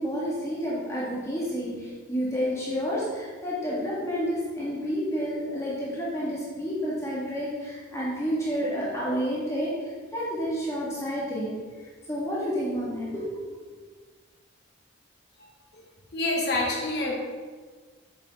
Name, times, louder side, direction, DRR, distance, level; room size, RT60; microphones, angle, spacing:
voice 1, 0.0-11.5 11.8-13.4, equal, 15° left, -7 dB, 1.8 m, -30 dB
voice 2, 16.1-17.1, left 2 dB, 55° left, -2 dB, 1.8 m, -27 dB
8.4 x 6.7 x 3.7 m, 1.5 s
head